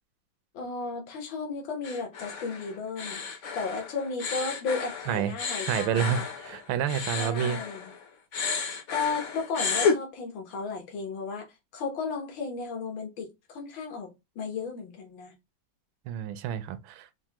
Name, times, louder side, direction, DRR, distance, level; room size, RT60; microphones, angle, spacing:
voice 1, 0.5-6.3 7.1-7.9 8.9-15.3, left 4 dB, 75° left, 1.8 m, -34 dB
sound 1, 1.8-8.0 8.3-10.0, left 5 dB, 55° left, 0.8 m, -32 dB
voice 2, 5.6-7.6 16.1-17.1, right 9 dB, 85° right, 1.4 m, -29 dB
5.4 x 2.1 x 2.9 m
omnidirectional pair, 2.1 m